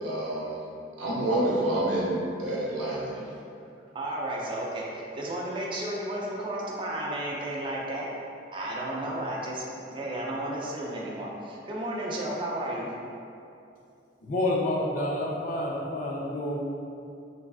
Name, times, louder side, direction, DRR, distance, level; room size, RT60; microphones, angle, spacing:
voice 1, 0.0-0.5 1.0-3.1, right 1 dB, 85° right, -6 dB, 0.7 m, -28 dB
voice 2, 3.9-8.1 8.5-12.9, right 1 dB, 25° right, -4 dB, 0.4 m, -33 dB
voice 3, 14.2-16.6, left 1 dB, 45° left, -2 dB, 0.4 m, -29 dB
3.3 x 2.4 x 2.3 m, 2.6 s
head